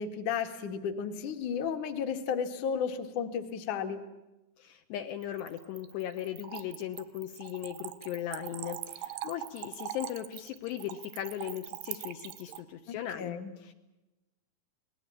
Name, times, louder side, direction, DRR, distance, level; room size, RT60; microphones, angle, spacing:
voice 1, 0.0-4.0 13.2-13.5, left 7 dB, 55° left, 8 dB, 2.7 m, -33 dB
voice 2, 4.6-13.7, left 11 dB, 75° left, 5 dB, 3.0 m, -38 dB
Splash splatter / Trickle dribble, 5.2-12.6, right 13 dB, 85° right, 3.4 m, -42 dB
27.0 x 19.5 x 8.5 m, 1.0 s
omnidirectional pair, 5.3 m